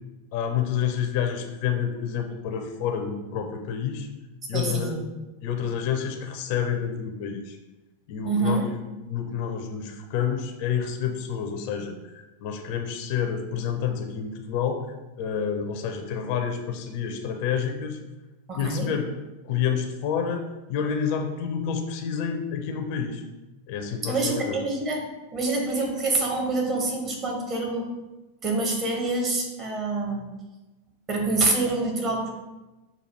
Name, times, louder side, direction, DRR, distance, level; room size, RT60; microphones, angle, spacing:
voice 1, 0.3-4.1 4.5-4.9 5.4-7.6 8.1-14.9 15.2-18.0 18.5-19.1 19.4-23.2 23.7-24.6, left 7 dB, 45° left, 4 dB, 0.5 m, -29 dB
voice 2, 4.5-5.0 8.2-8.7 18.5-18.9 24.0-25.0 25.3-27.9 28.4-30.3 31.1-32.3, right 3 dB, 30° right, 0 dB, 1.1 m, -26 dB
6.4 x 2.3 x 3.0 m, 1.1 s
figure-of-eight pair, 90°, 0 cm